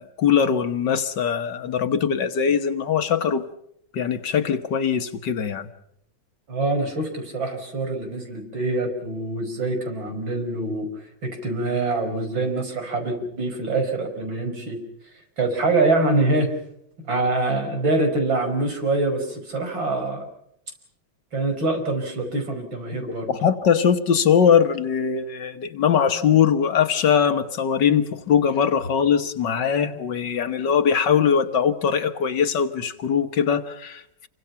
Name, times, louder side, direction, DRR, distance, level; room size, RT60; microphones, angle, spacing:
voice 1, 0.0-3.5 3.9-5.7 23.3-34.3, left 7 dB, 65° left, 1.8 m, -21 dB
voice 2, 6.5-10.9 11.2-14.8 15.4-16.5 17.1-20.3 21.3-23.3, right 2 dB, 70° right, 5.8 m, -24 dB
28.0 x 24.5 x 5.8 m
omnidirectional pair, 2.2 m